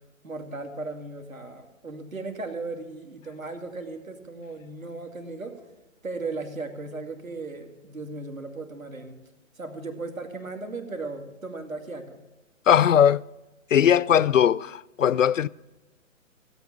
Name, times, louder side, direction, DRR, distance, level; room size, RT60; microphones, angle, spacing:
voice 1, 0.2-5.7 6.0-9.2 9.6-12.2, right 3 dB, 85° right, 2.6 m, -36 dB
voice 2, 12.7-13.2 13.7-15.5, left 9 dB, 70° left, 0.5 m, -19 dB
16.5 x 8.3 x 8.4 m
figure-of-eight pair, 135°, 40 cm